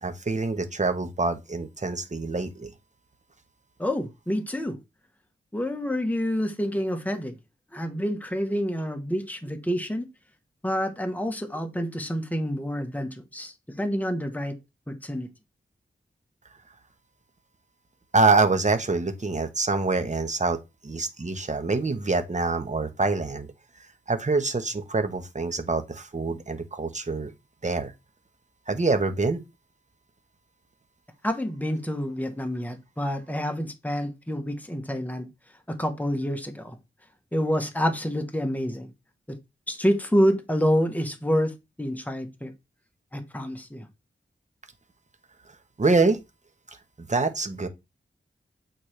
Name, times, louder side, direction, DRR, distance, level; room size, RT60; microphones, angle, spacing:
voice 1, 0.0-2.7 18.1-23.5 24.1-27.3 27.6-27.9 28.7-29.4 45.8-46.2 47.0-47.7, right 3 dB, 35° right, 1.2 m, -25 dB
voice 2, 3.8-4.8 5.5-7.3 7.7-10.1 10.6-14.6 14.9-15.3 31.2-35.3 35.7-36.8 37.3-38.9 39.3-39.4 39.7-41.5 41.8-42.5 43.1-43.9, equal, 10° left, 1.2 m, -28 dB
8.4 x 4.3 x 3.3 m
wide cardioid pair, 65°, 20 cm